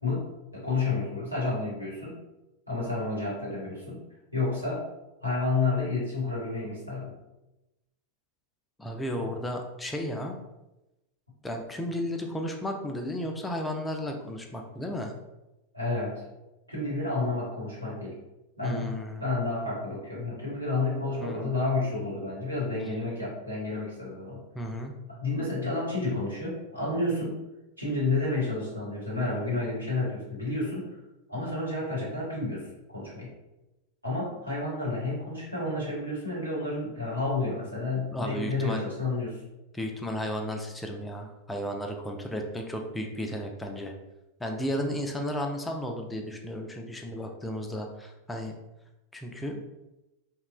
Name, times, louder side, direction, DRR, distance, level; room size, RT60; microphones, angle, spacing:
voice 1, 0.0-2.2 2.7-4.0 4.3-4.9 5.2-7.2 15.7-16.2 16.7-18.2 18.6-24.4 25.1-27.3 27.8-30.9 31.3-33.3 34.0-39.4, left 3 dB, 90° right, -7 dB, 1.1 m, -30 dB
voice 2, 8.8-10.4 11.4-15.1 18.6-19.3 21.2-21.5 24.5-25.0 38.1-38.8 39.7-43.9 44.4-48.5 49.1-49.6, equal, 10° left, 3 dB, 0.3 m, -34 dB
2.8 x 2.0 x 2.4 m, 0.97 s
figure-of-eight pair, 90°, 0 cm